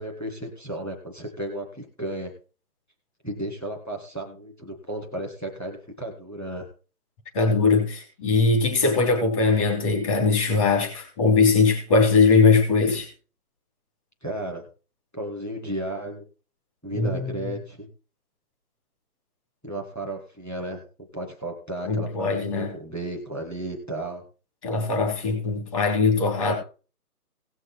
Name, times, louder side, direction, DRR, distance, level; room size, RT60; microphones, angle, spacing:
voice 1, 0.0-2.3 3.2-6.7 14.2-14.6 15.1-16.2 16.8-17.9 19.6-20.8 21.1-24.2, right 1 dB, 5° left, 1.5 m, -34 dB
voice 2, 7.3-13.1 16.9-17.5 21.8-22.7 24.6-26.5, left 4 dB, 20° left, 3.4 m, -21 dB
17.5 x 6.4 x 4.4 m
hypercardioid pair, 170°, 47 cm